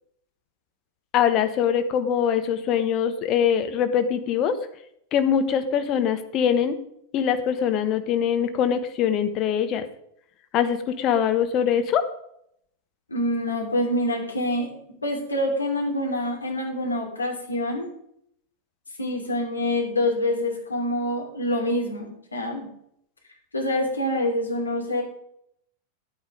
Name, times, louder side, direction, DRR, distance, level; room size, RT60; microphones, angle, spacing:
voice 1, 1.1-4.6 5.1-6.8 7.1-9.8 10.5-12.0, left 8 dB, 35° left, 9 dB, 1.2 m, -23 dB
voice 2, 13.1-14.7 15.0-17.9 19.0-22.7 23.5-25.0, left 1 dB, 80° left, 1 dB, 2.8 m, -26 dB
11.5 x 9.0 x 5.0 m, 0.72 s
figure-of-eight pair, 90°, 0 cm